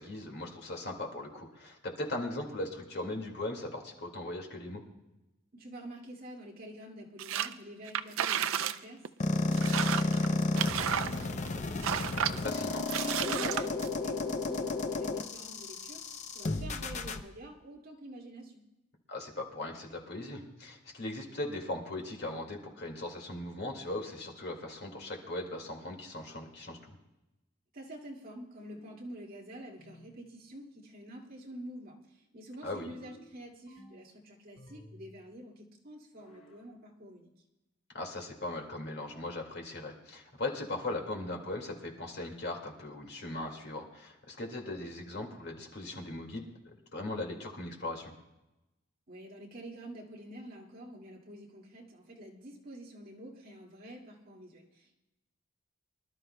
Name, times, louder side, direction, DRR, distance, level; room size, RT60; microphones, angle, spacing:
voice 1, 0.0-4.8 12.4-12.8 19.1-26.9 32.6-32.9 37.9-48.1, left 2 dB, 55° left, 2 dB, 2.0 m, -39 dB
voice 2, 5.5-11.8 12.3-16.0 16.3-18.6 27.7-37.3 49.1-54.9, right 1 dB, 45° right, -2 dB, 2.2 m, -48 dB
sound 1, 7.2-7.5 7.9-8.8 9.1-9.2 9.5-11.5 11.8-12.4 12.9-13.9, right 9 dB, 90° right, 0.5 m, -32 dB
sound 2, 9.2-17.2, left 2 dB, 35° left, 0.6 m, -32 dB
sound 3, 28.6-29.1 29.8-30.3 33.0-34.2 34.6-35.2 36.2-36.7 39.0-39.5 40.6-41.1, equal, 75° left, 2.5 m, -56 dB
25.0 x 12.0 x 2.2 m, 0.97 s
head